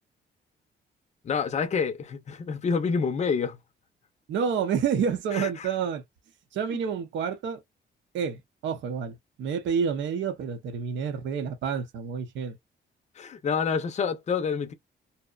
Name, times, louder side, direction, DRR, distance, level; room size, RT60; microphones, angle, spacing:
voice 1, 1.2-3.6 5.3-5.7 6.7-6.8 13.2-14.7, left 5 dB, 35° left, 0.5 m, -28 dB
voice 2, 4.3-6.0 6.5-7.6 8.1-12.6, right 7 dB, 70° right, 0.7 m, -29 dB
2.7 x 2.1 x 2.3 m
cardioid pair, 90°, 20 cm